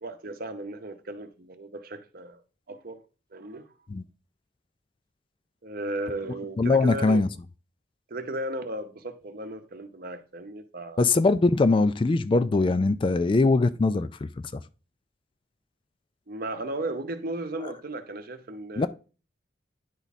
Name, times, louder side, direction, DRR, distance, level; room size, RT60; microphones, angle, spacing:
voice 1, 0.0-2.4 2.7-3.0 3.3-3.7 5.6-7.3 8.1-11.0 16.3-18.9, right 2 dB, 55° right, 0.8 m, -35 dB
voice 2, 6.6-7.3 11.0-14.6 17.6-17.7 18.8-18.9, left 3 dB, 30° left, 0.3 m, -22 dB
10.0 x 3.5 x 4.1 m
head